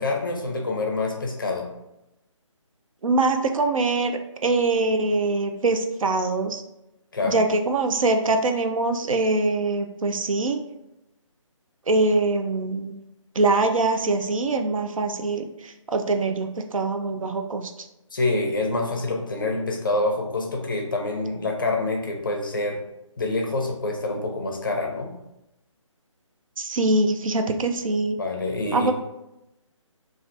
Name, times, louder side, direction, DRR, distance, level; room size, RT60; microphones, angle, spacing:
voice 1, 0.0-1.7 7.1-7.4 18.1-22.8 23.2-25.1 28.2-28.9, left 2 dB, 40° left, 1 dB, 0.5 m, -26 dB
voice 2, 3.0-6.6 7.2-10.6 11.9-12.9 13.4-17.7 26.6-28.2 28.7-28.9, right 3 dB, 85° right, 6 dB, 0.5 m, -23 dB
3.2 x 2.4 x 2.6 m, 0.90 s
hypercardioid pair, 175°, 17 cm